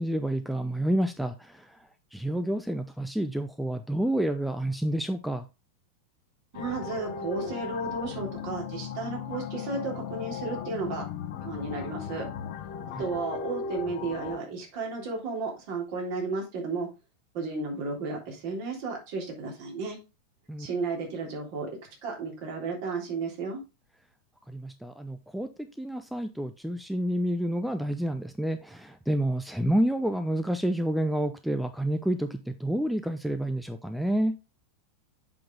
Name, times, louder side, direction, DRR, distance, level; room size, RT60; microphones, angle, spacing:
voice 1, 0.0-5.5 12.9-13.0 20.5-20.7 24.5-25.5 25.8-34.3, right 1 dB, ahead, 0.6 m, -29 dB
sound 1, 6.5-14.4, left 7 dB, 50° left, 1.1 m, -36 dB
voice 2, 6.5-11.1 11.4-12.3 13.0-16.9 17.3-20.0 20.6-21.7 22.0-23.6, right 4 dB, 45° right, 3.4 m, -33 dB
7.6 x 5.8 x 3.7 m
figure-of-eight pair, 90°, 0 cm